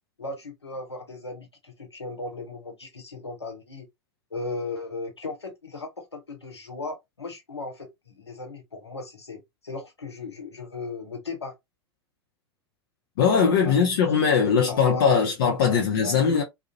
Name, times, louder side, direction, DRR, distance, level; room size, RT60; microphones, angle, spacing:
voice 1, 0.2-3.9 4.3-11.5 13.6-13.7 14.3-14.4 14.7-15.3 15.7-16.4, left 3 dB, 85° left, 0.8 m, -36 dB
voice 2, 13.2-16.4, left 6 dB, 55° left, 0.7 m, -20 dB
2.4 x 2.1 x 2.6 m
figure-of-eight pair, 90°, 14 cm